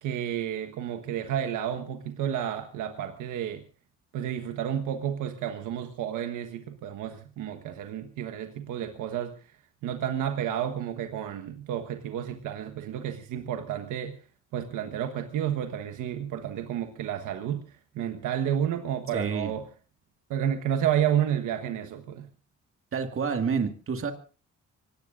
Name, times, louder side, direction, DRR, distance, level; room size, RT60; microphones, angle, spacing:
voice 1, 0.0-3.6 4.1-9.3 9.8-14.1 14.5-17.6 17.9-19.6 20.3-22.3, right 10 dB, 85° right, 6 dB, 1.4 m, -31 dB
voice 2, 19.1-19.5 22.9-24.1, right 5 dB, 45° right, 6 dB, 2.1 m, -28 dB
25.5 x 18.0 x 2.6 m, 0.37 s
cardioid pair, 90°, 30 cm